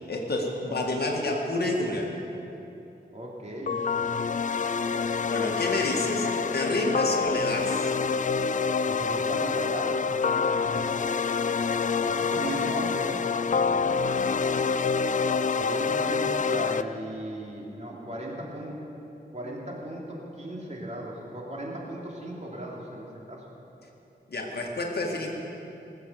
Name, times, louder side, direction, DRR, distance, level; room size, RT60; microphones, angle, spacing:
voice 1, 0.1-2.1 5.3-7.9 24.3-25.3, left 2 dB, 60° left, 0 dB, 1.9 m, -29 dB
voice 2, 3.1-3.8 8.8-10.8 12.0-13.2 15.5-18.8 19.3-23.4, right 1 dB, 40° right, -3 dB, 2.9 m, -37 dB
sound 1, 3.7-16.8, left 5 dB, 45° left, 0.4 m, -27 dB
20.0 x 7.5 x 6.8 m, 2.9 s
wide cardioid pair, 85°, 18 cm